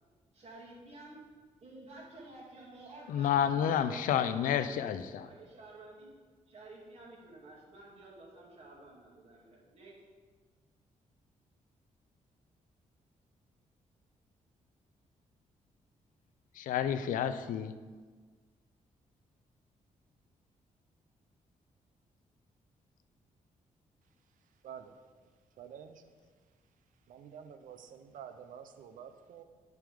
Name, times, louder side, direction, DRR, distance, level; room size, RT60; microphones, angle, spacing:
voice 1, 0.3-1.2 1.6-6.1 6.5-10.0, right 2 dB, 50° right, -5 dB, 2.3 m, -52 dB
voice 2, 3.1-5.3 16.6-17.7, left 9 dB, 85° left, 11 dB, 0.4 m, -30 dB
voice 3, 24.6-25.3 25.6-26.0 27.1-29.4, right 8 dB, 80° right, 8 dB, 0.6 m, -49 dB
9.2 x 3.5 x 4.9 m, 1.5 s
cardioid pair, 115°, 14 cm